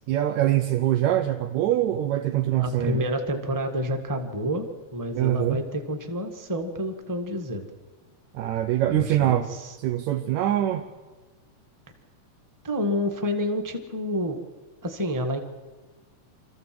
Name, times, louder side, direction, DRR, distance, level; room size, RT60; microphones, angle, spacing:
voice 1, 0.1-3.0 5.1-5.6 8.3-9.5 9.8-10.9, right 13 dB, 80° right, 6 dB, 2.2 m, -24 dB
voice 2, 2.6-4.7 4.9-7.7 8.9-9.8 12.6-14.4 14.8-15.4, equal, 10° right, 5 dB, 0.9 m, -29 dB
26.0 x 14.0 x 7.7 m, 1.2 s
omnidirectional pair, 3.3 m